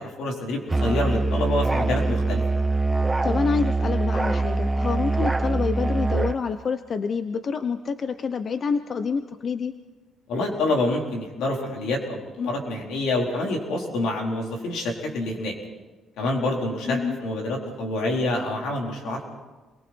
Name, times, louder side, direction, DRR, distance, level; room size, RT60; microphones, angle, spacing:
voice 1, 0.0-2.4 10.3-15.5 16.2-19.2, left 2 dB, 90° left, 0 dB, 4.1 m, -27 dB
Musical instrument, 0.7-6.4, right 3 dB, 20° right, 1.0 m, -23 dB
voice 2, 3.2-9.7 16.9-17.2, left 5 dB, 50° left, 10 dB, 0.8 m, -27 dB
28.0 x 22.5 x 4.5 m, 1.3 s
cardioid pair, 90°, 0 cm